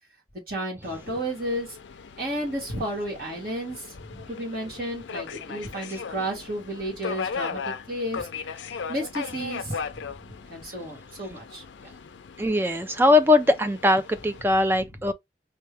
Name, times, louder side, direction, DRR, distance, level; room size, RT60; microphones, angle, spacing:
voice 1, 0.5-1.8 2.2-7.6 7.9-8.3 8.9-11.9 14.8-14.9, right 1 dB, 50° right, 2.2 m, -32 dB
Subway metro underground, 0.8-14.4, left 5 dB, 85° left, 0.5 m, -38 dB
voice 2, 12.4-15.1, left 2 dB, 10° right, 0.4 m, -21 dB
4.4 x 2.7 x 3.4 m
head